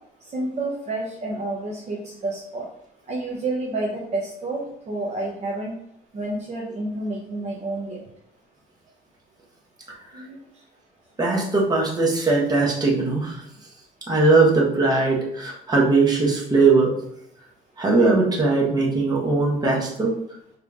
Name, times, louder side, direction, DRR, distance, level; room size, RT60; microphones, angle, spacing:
voice 1, 0.3-2.6 3.1-5.7 6.1-8.0 10.1-10.4, right 2 dB, 40° right, -3 dB, 0.9 m, -29 dB
voice 2, 11.2-13.4 14.1-16.9 17.8-20.1, right 3 dB, 25° right, -3 dB, 1.3 m, -20 dB
5.2 x 3.2 x 2.5 m, 0.76 s
cardioid pair, 110°, 17 cm